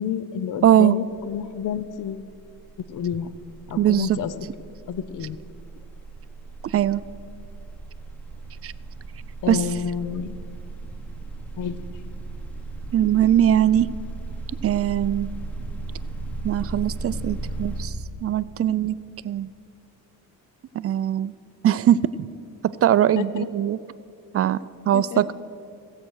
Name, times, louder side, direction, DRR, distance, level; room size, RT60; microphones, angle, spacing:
voice 1, 0.0-2.3 2.9-3.3 3.7-4.3 4.9-5.4 9.4-10.4 11.5-11.8 23.2-23.5 24.9-25.2, left 8 dB, 55° left, 14 dB, 0.7 m, -29 dB
voice 2, 0.6-0.9 3.8-4.2 6.6-7.0 8.6-8.7 9.5-9.6 12.9-13.9 14.6-15.3 16.4-17.9 18.2-19.0 19.2-19.5 20.7-21.3 21.6-22.3 22.6-23.8 24.3-24.6 24.9-25.3, right 11 dB, 40° right, 17 dB, 0.4 m, -20 dB
sound 1, 1.1-1.5 1.7-17.9, right 2 dB, 5° left, 1.3 m, -36 dB
16.0 x 7.7 x 6.4 m, 2.4 s
cardioid pair, 95°, 38 cm